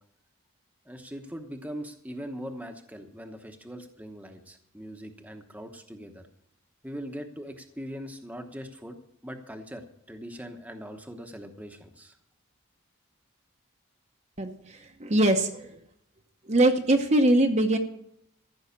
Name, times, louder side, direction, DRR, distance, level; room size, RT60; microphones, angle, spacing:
voice 1, 0.8-6.3 6.8-9.0 9.2-12.2, equal, 5° right, 5 dB, 1.0 m, -41 dB
voice 2, 14.4-15.8 16.4-17.8, right 1 dB, 30° right, 4 dB, 0.9 m, -22 dB
14.5 x 6.3 x 8.4 m, 0.73 s
head